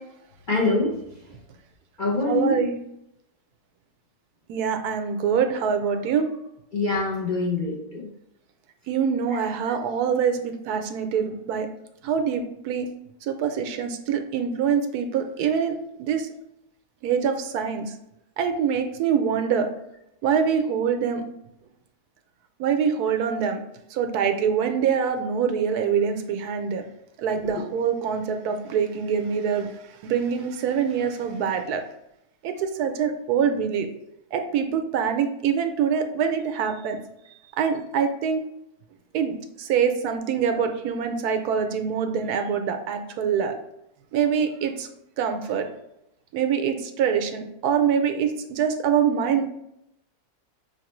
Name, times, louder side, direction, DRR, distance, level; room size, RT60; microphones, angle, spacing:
voice 1, 0.5-1.0 2.0-2.7 6.7-8.1 9.3-9.4 9.7-9.8 27.5-27.6, left 3 dB, 40° left, -4 dB, 0.8 m, -25 dB
voice 2, 2.3-2.8 4.5-6.3 8.9-11.7 12.0-12.9 13.2-15.7 16.0-16.3 17.0-17.9 18.4-19.7 20.2-21.2 22.6-23.6 23.9-26.8 27.2-29.7 30.0-31.8 32.4-33.9 34.3-37.0 37.6-38.4 39.1-43.5 44.1-44.9 45.2-45.7 46.3-49.5, right 7 dB, 80° right, 6 dB, 1.1 m, -24 dB
5.5 x 3.2 x 3.0 m, 0.81 s
omnidirectional pair, 1.7 m